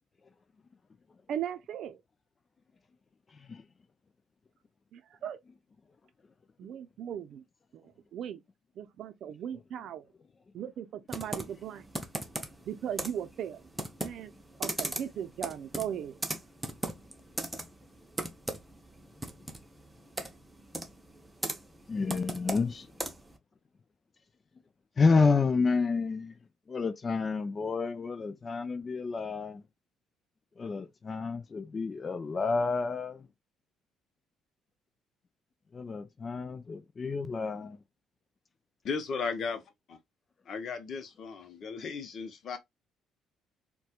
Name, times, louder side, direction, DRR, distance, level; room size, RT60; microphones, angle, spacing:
voice 1, 1.3-2.0 4.9-5.4 6.6-7.4 7.7-8.4 8.8-10.1 10.5-11.8 12.7-13.6 14.0-14.3 14.6-16.2, right 9 dB, 60° right, 0.5 m, -38 dB
voice 2, 3.3-3.6 21.9-22.9 25.0-26.3 26.7-29.6 30.6-33.3 35.7-37.8, left 4 dB, 30° left, 0.3 m, -29 dB
Computer keyboard, 11.1-23.4, right 1 dB, 10° right, 0.6 m, -39 dB
voice 3, 38.8-40.0 40.5-42.6, left 5 dB, 50° left, 0.7 m, -36 dB
4.2 x 2.2 x 2.3 m
cardioid pair, 110°, 0 cm